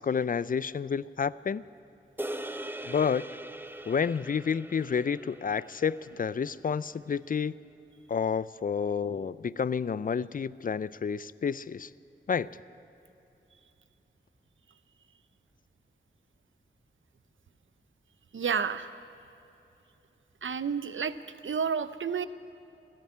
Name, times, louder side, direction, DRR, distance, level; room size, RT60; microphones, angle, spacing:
voice 1, 0.0-1.6 2.8-3.3 3.9-7.5 8.1-11.9 12.3-12.5, left 6 dB, 45° left, 19 dB, 0.4 m, -30 dB
sound 1, 2.2-6.7, right 1 dB, 10° right, 0.7 m, -41 dB
voice 2, 18.3-19.0 20.4-21.1 21.4-22.3, right 6 dB, 75° right, 13 dB, 0.6 m, -30 dB
14.0 x 10.5 x 9.3 m, 2.9 s
cardioid pair, 50°, 20 cm